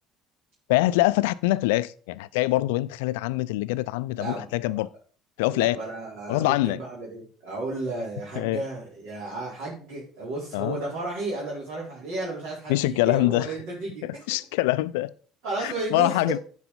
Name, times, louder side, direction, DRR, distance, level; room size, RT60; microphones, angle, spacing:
voice 1, 0.7-4.9 5.4-5.8 6.3-6.8 8.4-8.6 10.5-10.8 12.7-13.5 14.0-15.1 15.6-16.4, left 18 dB, 75° left, 0.4 m, -24 dB
voice 2, 4.2-4.7 5.5-14.3 15.4-16.2, right 2 dB, 65° right, 4.1 m, -33 dB
9.5 x 5.0 x 5.3 m
hypercardioid pair, 65°, 0 cm